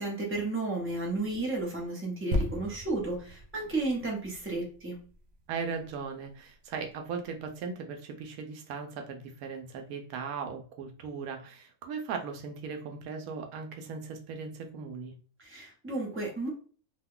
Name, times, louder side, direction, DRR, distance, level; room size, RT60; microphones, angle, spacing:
voice 1, 0.0-5.0 15.4-16.5, right 2 dB, 10° right, -2 dB, 0.8 m, -33 dB
sound 1, 2.3-5.9 6.5-6.6, left 1 dB, 60° right, 0.7 m, -36 dB
voice 2, 5.5-15.1, right 5 dB, 85° right, 5 dB, 1.1 m, -38 dB
2.9 x 2.2 x 3.6 m, 0.41 s
omnidirectional pair, 1.5 m